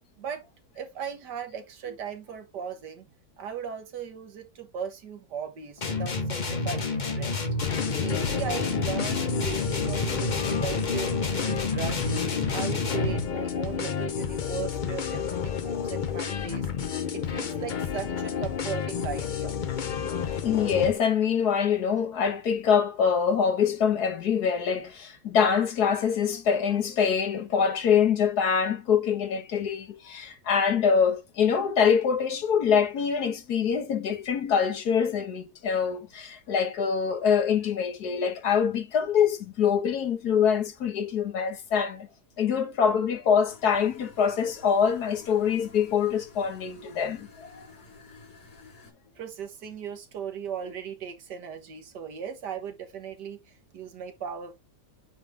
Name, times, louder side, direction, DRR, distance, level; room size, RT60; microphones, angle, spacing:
voice 1, 0.8-3.1 3.4-7.5 8.0-12.0 12.5-16.7 17.1-19.6 49.2-54.5, right 8 dB, 80° right, 1.9 m, -37 dB
sound 1, 5.8-13.3, left 3 dB, 30° left, 1.0 m, -29 dB
sound 2, 7.6-20.9, left 7 dB, 55° left, 0.5 m, -31 dB
voice 2, 20.4-42.1 42.4-47.7, left 7 dB, 70° left, 1.7 m, -25 dB
sound 3, 43.5-48.9, left 4 dB, 90° left, 4.4 m, -51 dB
8.2 x 3.7 x 3.4 m
omnidirectional pair, 1.8 m